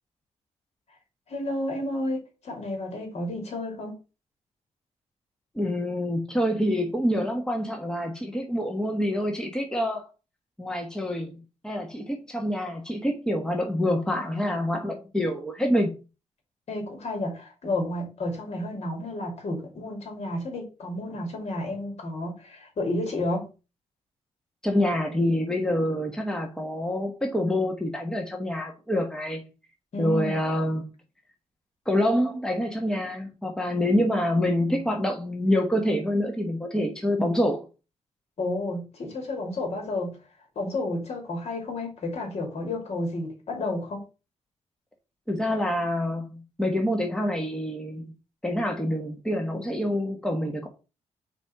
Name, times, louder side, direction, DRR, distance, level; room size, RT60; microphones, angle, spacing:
voice 1, 1.3-4.0 14.3-14.4 16.7-23.5 29.9-30.4 38.4-40.2 40.6-44.0, left 2 dB, 60° left, 2.6 m, -31 dB
voice 2, 5.5-10.0 10.6-11.3 11.6-15.9 24.6-29.4 30.0-30.8 31.9-37.6 45.3-48.1 48.4-50.7, left 1 dB, 5° left, 1.2 m, -26 dB
4.4 x 4.1 x 5.7 m
cardioid pair, 105°, 12 cm